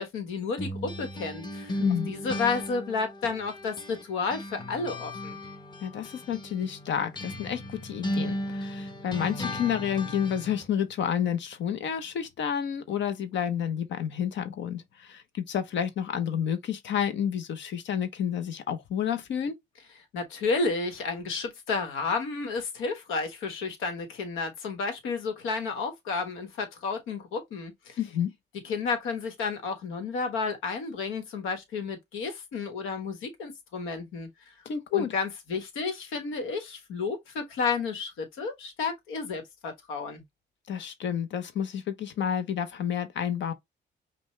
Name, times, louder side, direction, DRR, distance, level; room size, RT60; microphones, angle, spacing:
voice 1, 0.0-5.4 20.1-28.0 28.6-34.5 34.9-40.2, left 4 dB, 90° left, 1.2 m, -32 dB
sound 1, 0.6-4.0 4.3-10.7, left 1 dB, 20° left, 1.0 m, -36 dB
voice 2, 1.8-2.1 5.8-19.5 28.0-28.3 34.7-35.1 40.7-43.5, left 8 dB, 65° left, 0.8 m, -30 dB
5.3 x 2.3 x 3.1 m
cardioid pair, 90°, 20 cm